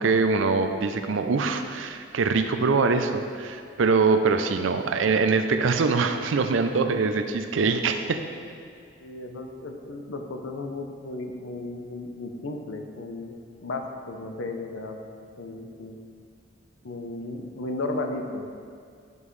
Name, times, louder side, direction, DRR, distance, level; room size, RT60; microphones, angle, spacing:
voice 1, 0.0-8.2, right 4 dB, 80° right, 8 dB, 0.5 m, -23 dB
voice 2, 9.0-13.3 13.6-15.0 15.4-16.0 16.8-18.5, left 2 dB, 85° left, 4 dB, 0.7 m, -34 dB
9.9 x 5.3 x 3.2 m, 2.2 s
head